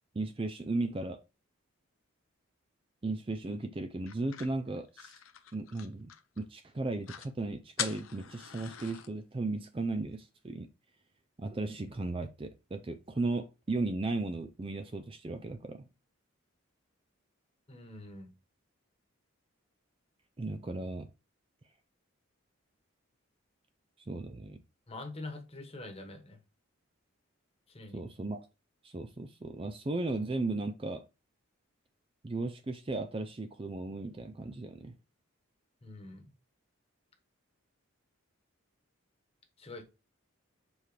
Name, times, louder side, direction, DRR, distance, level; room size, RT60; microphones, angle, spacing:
voice 1, 0.1-1.2 3.0-5.1 5.5-6.1 6.4-10.7 11.4-15.8 20.4-21.1 24.1-24.6 27.9-28.4 28.8-31.0 32.2-34.9, right 2 dB, 25° right, 0.4 m, -36 dB
sound 1, 4.1-6.4 6.8-6.9 7.0-7.3 7.8-9.1, left 10 dB, 75° left, 0.7 m, -41 dB
voice 2, 17.7-18.3 24.9-26.4 27.7-28.0 35.8-36.3 39.6-39.8, left 2 dB, 30° left, 1.3 m, -45 dB
7.1 x 4.4 x 3.3 m
head